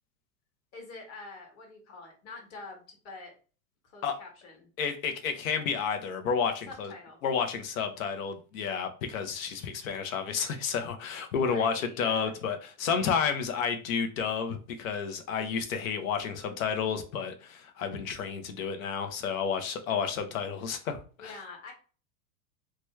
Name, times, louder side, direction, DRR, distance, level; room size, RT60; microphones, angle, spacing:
voice 1, 0.7-3.3 3.8-4.7 6.7-7.2 11.4-12.3 21.2-21.7, left 3 dB, 35° left, 1.4 m, -46 dB
voice 2, 4.8-6.9 7.2-21.4, left 6 dB, 70° left, 0.8 m, -31 dB
3.0 x 2.3 x 3.1 m
supercardioid pair, 135°, 42 cm